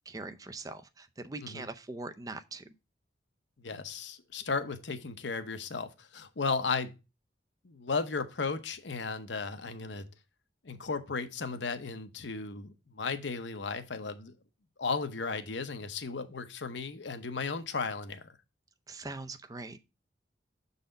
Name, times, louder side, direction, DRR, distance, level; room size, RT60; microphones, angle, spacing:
voice 1, 0.1-2.7 18.9-19.8, right 3 dB, 20° right, 0.4 m, -42 dB
voice 2, 3.6-6.9 7.6-10.1 10.6-14.3 14.8-18.2, left 4 dB, 75° left, 0.8 m, -35 dB
6.8 x 4.1 x 5.1 m
head